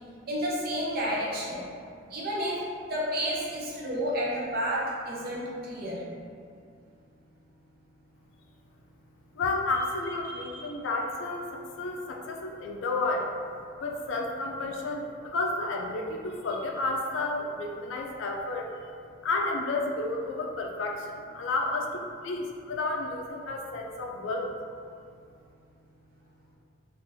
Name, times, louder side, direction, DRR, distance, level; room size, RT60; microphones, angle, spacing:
voice 1, 0.3-1.6 2.1-2.6 2.9-6.0 10.2-10.7, equal, 50° right, -5 dB, 0.7 m, -31 dB
voice 2, 9.4-13.3 13.8-18.7 19.2-24.5, left 2 dB, 70° left, 1 dB, 0.4 m, -31 dB
3.5 x 2.5 x 2.6 m, 2.3 s
head